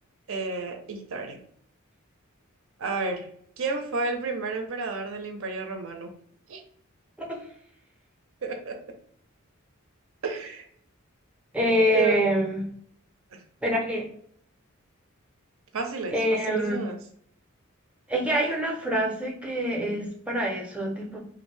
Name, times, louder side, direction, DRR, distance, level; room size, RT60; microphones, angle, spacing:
voice 1, 0.3-1.4 2.8-3.3 3.6-6.1 6.5-6.6 8.4-8.8 10.2-10.7 11.9-12.2 13.3-13.4 15.7-17.0, right 3 dB, 65° right, 5 dB, 0.6 m, -31 dB
voice 2, 11.5-12.7 13.6-14.1 16.1-16.8 18.1-21.2, equal, 5° right, -1 dB, 0.6 m, -26 dB
2.6 x 2.5 x 3.2 m, 0.64 s
head